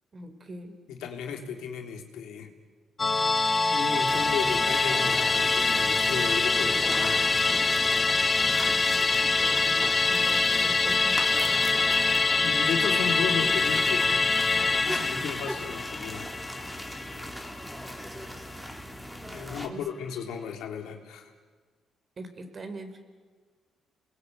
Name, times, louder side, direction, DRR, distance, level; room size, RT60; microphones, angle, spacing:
voice 1, 0.1-0.8 8.7-8.9 9.4-11.6 19.7-19.8 22.2-23.0, right 2 dB, 40° right, 7 dB, 4.0 m, -42 dB
voice 2, 0.9-2.5 3.7-7.3 12.4-14.1 14.8-16.3 19.3-21.3, left 7 dB, 85° left, 3 dB, 3.3 m, -34 dB
Musical instrument, 3.0-17.7 18.0-18.1, left 3 dB, 30° left, 0.8 m, -25 dB
sound 1, 4.1-19.7, equal, 5° right, 3.1 m, -39 dB
29.5 x 21.5 x 9.4 m, 1.5 s
cardioid pair, 90°, 0 cm